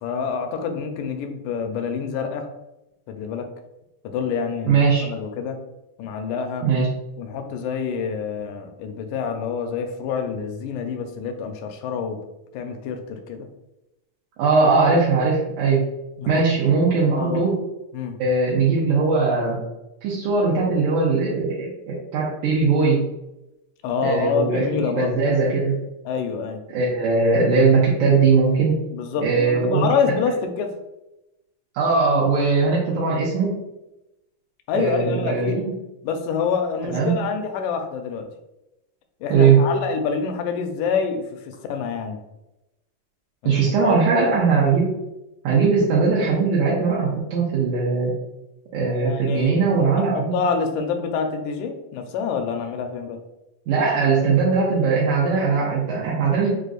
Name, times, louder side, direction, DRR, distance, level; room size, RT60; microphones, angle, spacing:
voice 1, 0.0-2.5 3.1-3.5 4.0-5.6 6.0-6.7 7.2-12.3 12.5-13.5 16.2-16.4 17.1-17.5 17.9-18.2 23.8-25.2 26.1-26.6 28.9-30.7 34.7-35.6 36.0-38.3 39.2-42.2 43.4-43.9 49.0-53.2, left 6 dB, 80° left, 6 dB, 1.9 m, -27 dB
voice 2, 4.7-5.1 6.6-6.9 14.4-15.8 16.3-17.5 18.2-19.6 20.0-23.0 24.0-25.8 26.7-28.8 29.2-29.9 31.7-33.6 34.7-35.7 36.9-37.1 39.3-39.6 43.5-44.9 45.4-48.1 48.7-50.4 53.7-56.5, right 4 dB, 75° right, -6 dB, 2.1 m, -20 dB
6.1 x 2.5 x 2.4 m, 0.95 s
omnidirectional pair, 3.9 m